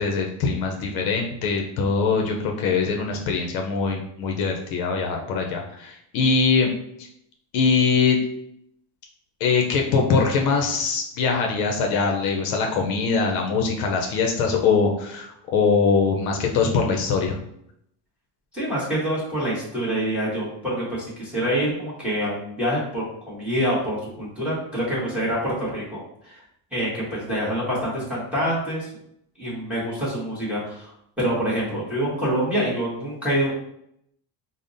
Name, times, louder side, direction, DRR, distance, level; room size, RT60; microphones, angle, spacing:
voice 1, 0.0-6.7 7.5-8.2 9.4-17.4, left 5 dB, 55° left, 2 dB, 0.6 m, -22 dB
voice 2, 18.5-26.0 26.2-26.4 26.7-28.9 29.4-30.9 31.2-33.5, equal, 5° right, -8 dB, 1.0 m, -26 dB
5.1 x 2.0 x 2.6 m, 0.74 s
cardioid pair, 175°, 42 cm